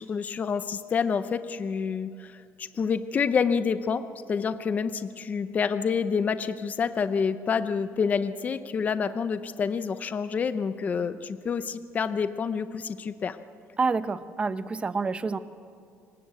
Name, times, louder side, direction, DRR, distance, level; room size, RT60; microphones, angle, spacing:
voice 1, 0.0-4.0 4.3-13.4, left 6 dB, 30° left, 12 dB, 0.7 m, -28 dB
voice 2, 13.8-15.4, right 4 dB, 20° right, 13 dB, 0.8 m, -28 dB
26.0 x 18.5 x 8.3 m, 2.4 s
cardioid pair, 160°, 5 cm